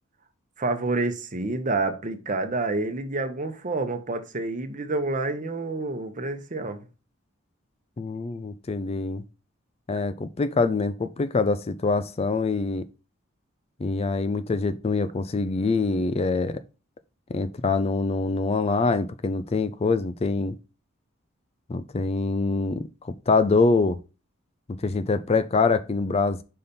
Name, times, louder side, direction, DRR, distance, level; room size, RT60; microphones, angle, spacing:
voice 1, 0.6-6.9, right 2 dB, 40° right, 0.9 m, -28 dB
voice 2, 8.0-9.2 9.9-12.9 13.8-16.6 17.3-20.6 21.7-24.0 24.7-26.4, left 3 dB, 30° left, 0.4 m, -25 dB
5.6 x 4.1 x 5.2 m
head